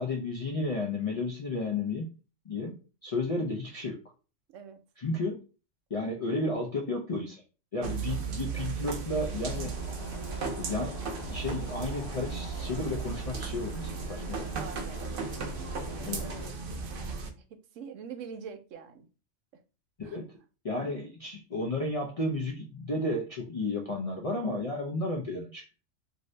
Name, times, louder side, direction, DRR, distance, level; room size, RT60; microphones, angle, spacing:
voice 1, 0.0-2.2 2.5-4.0 5.0-5.4 5.9-7.4 7.7-9.8 10.6-11.0 11.3-14.4 16.0-16.3 20.0-20.3 20.6-25.7, left 2 dB, 55° left, 0.4 m, -33 dB
voice 2, 4.5-4.8 14.4-15.2 15.6-16.6 17.7-19.1 20.0-20.2, right 6 dB, 80° right, 0.9 m, -44 dB
sound 1, 7.8-17.3, right 5 dB, 60° right, 0.6 m, -36 dB
sound 2, 9.5-16.5, left 1 dB, 75° left, 1.0 m, -44 dB
2.6 x 2.6 x 3.2 m
omnidirectional pair, 1.3 m